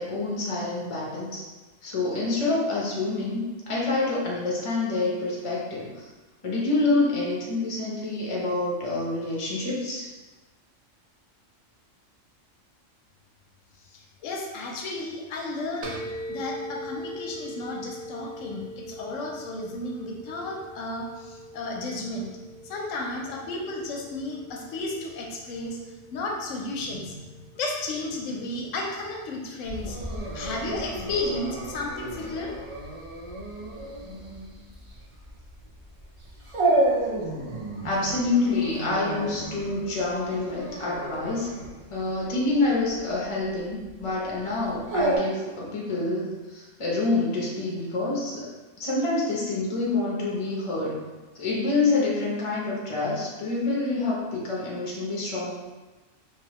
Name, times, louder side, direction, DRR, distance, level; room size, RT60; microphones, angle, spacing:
voice 1, 0.0-1.4 1.8-6.0 6.4-10.1 36.7-36.8 37.8-41.5 41.9-48.5 48.8-50.9 51.3-55.5, left 3 dB, 30° left, -4 dB, 0.6 m, -27 dB
voice 2, 13.9-15.9 16.3-22.3 22.6-30.0 30.3-32.5, left 2 dB, 80° left, -1 dB, 0.9 m, -33 dB
sound 1, 15.8-33.2, equal, 70° right, 0.9 m, -43 dB
Dog, 29.6-45.2, right 2 dB, 55° right, 0.3 m, -31 dB
3.1 x 3.0 x 2.9 m, 1.2 s
omnidirectional pair, 1.3 m